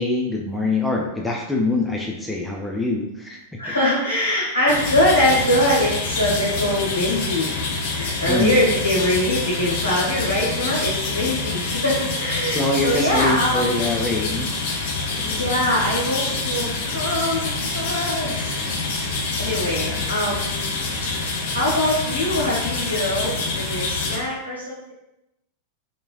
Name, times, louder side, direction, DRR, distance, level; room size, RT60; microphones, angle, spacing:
voice 1, 0.0-3.4 8.2-8.6 12.5-14.9 19.5-20.0, left 2 dB, 5° left, -1 dB, 0.4 m, -24 dB
voice 2, 3.6-7.5 7.9-13.9 15.2-18.5 19.4-20.7 21.5-24.9, left 1 dB, 80° left, -8 dB, 1.5 m, -23 dB
sound 1, 4.7-24.2, left 3 dB, 50° left, 0.5 m, -26 dB
3.0 x 2.7 x 2.4 m, 0.88 s
figure-of-eight pair, 90°, 0 cm